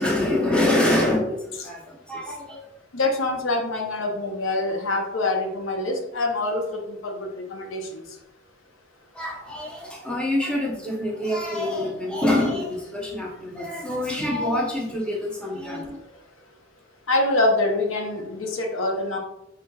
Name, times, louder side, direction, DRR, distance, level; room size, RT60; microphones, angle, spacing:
voice 1, 0.0-2.6 9.1-16.0, left 1 dB, 5° left, -3 dB, 0.8 m, -25 dB
voice 2, 2.9-8.0 17.1-19.2, left 2 dB, 70° left, 3 dB, 0.6 m, -25 dB
4.2 x 3.7 x 2.3 m, 0.85 s
head